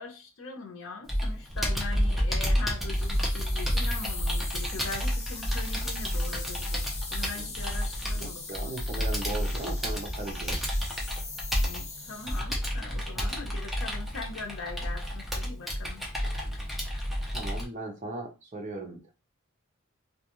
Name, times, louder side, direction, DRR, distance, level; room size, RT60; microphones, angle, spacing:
voice 1, 0.0-8.8 11.6-16.0, left 3 dB, 75° left, 0.6 m, -41 dB
Computer keyboard, 1.1-17.6, equal, ahead, 0.7 m, -30 dB
sound 1, 2.9-12.4, left 4 dB, 35° left, 0.7 m, -41 dB
voice 2, 8.1-10.6 12.3-12.4 13.1-13.3 16.4-16.7 17.3-19.1, right 2 dB, 35° right, 0.7 m, -38 dB
2.4 x 2.3 x 2.9 m
head